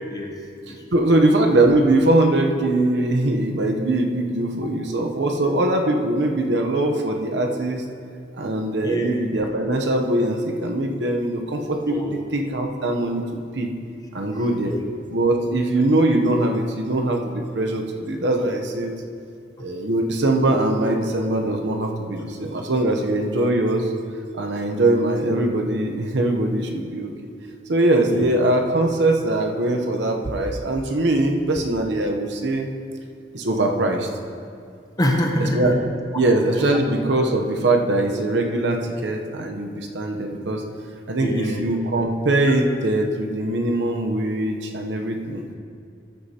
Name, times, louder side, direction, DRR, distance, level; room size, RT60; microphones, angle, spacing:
voice 1, 0.9-7.8 8.4-13.2 13.5-13.7 14.1-14.7 15.1-18.9 19.6-23.9 24.3-27.1 27.7-32.7 33.3-34.1 35.4-35.8 36.1-40.6 41.1-45.4, right 2 dB, 75° right, 2 dB, 0.8 m, -21 dB
voice 2, 11.9-12.2 14.7-14.8 28.1-28.3 35.0-35.7 41.2-41.6, equal, 20° left, 1 dB, 0.8 m, -25 dB
13.5 x 8.1 x 2.9 m, 2.3 s
head